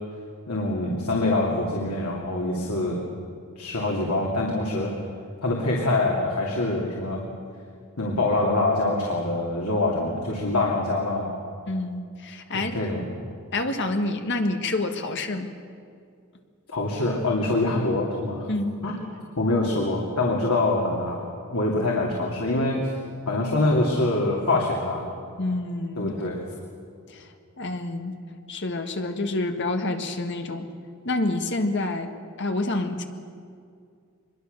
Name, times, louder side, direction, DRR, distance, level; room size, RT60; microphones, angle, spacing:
voice 1, 0.5-3.0 3.6-4.9 5.4-7.2 8.0-11.3 12.5-13.1 16.7-18.5 18.8-18.9 19.4-23.0 23.3-25.1 26.0-26.4, left 2 dB, 90° left, -2 dB, 2.7 m, -25 dB
voice 2, 11.7-12.7 13.5-15.5 18.5-18.8 25.4-26.1 27.1-27.3 27.6-28.2 28.5-30.7 31.0-32.1 32.4-33.1, left 2 dB, 55° left, 6 dB, 1.7 m, -28 dB
24.0 x 21.5 x 6.7 m, 2.3 s
head